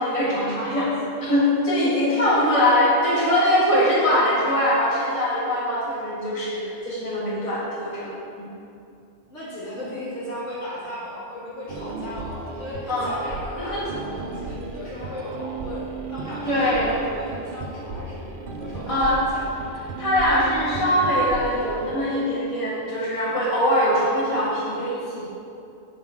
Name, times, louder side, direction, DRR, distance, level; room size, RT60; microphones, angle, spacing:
voice 1, 0.0-8.1 8.4-8.5 12.9-13.1 13.6-13.8 16.4-17.0 18.9-19.2 20.0-25.2, left 1 dB, 25° left, -9 dB, 1.9 m, -22 dB
voice 2, 2.1-2.5 9.3-18.3 18.6-19.5, left 1 dB, 75° left, -9 dB, 2.6 m, -36 dB
sound 1, 11.7-21.9, right 4 dB, 55° right, 0.7 m, -35 dB
7.2 x 4.7 x 6.4 m, 2.6 s
omnidirectional pair, 1.3 m